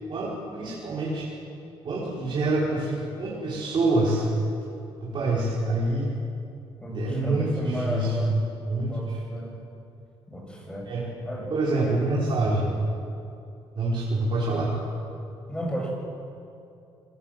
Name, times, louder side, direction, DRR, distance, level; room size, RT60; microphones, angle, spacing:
voice 1, 0.1-1.3 1.8-4.3 5.0-6.1 6.9-8.4 8.7-9.2 10.8-11.1 11.5-12.8 13.7-14.8, right 2 dB, 50° right, -6 dB, 4.8 m, -26 dB
voice 2, 6.8-8.4 8.8-9.6 10.3-10.9 11.2-11.5 15.5-15.9, right 1 dB, 10° left, -1 dB, 7.7 m, -33 dB
25.5 x 19.0 x 7.7 m, 2.6 s
cardioid pair, 95°, 10 cm